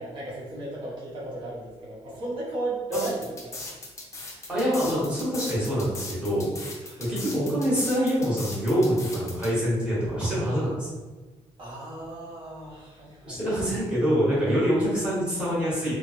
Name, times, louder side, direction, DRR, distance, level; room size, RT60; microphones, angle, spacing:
voice 1, 0.0-3.7 4.3-4.5 6.8-7.1 11.6-13.4, right 2 dB, 40° right, -7 dB, 1.0 m, -35 dB
sound 1, 2.9-9.5, left 2 dB, 25° left, 0.5 m, -38 dB
voice 2, 4.5-6.5 7.0-10.9 13.2-15.9, equal, 10° right, -9 dB, 1.2 m, -25 dB
3.1 x 2.1 x 3.0 m, 1.2 s
wide cardioid pair, 175°, 12 cm